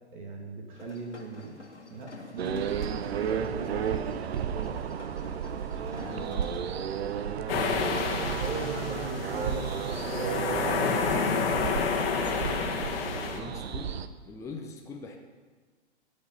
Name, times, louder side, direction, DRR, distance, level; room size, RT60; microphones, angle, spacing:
voice 1, 0.1-1.6 1.9-4.8 8.4-11.6, right 2 dB, 45° right, 1 dB, 2.1 m, -39 dB
sound 1, 0.7-6.6, left 3 dB, 90° left, 1.8 m, -49 dB
sound 2, 2.4-14.1, right 8 dB, 60° right, 0.7 m, -33 dB
voice 2, 6.0-6.5 13.2-13.9 14.2-15.2, left 3 dB, 10° left, 1 dB, 0.7 m, -41 dB
sound 3, 7.5-13.4, left 5 dB, 55° left, 1.6 m, -30 dB
16.0 x 5.4 x 5.5 m, 1.4 s
figure-of-eight pair, 120°, 35 cm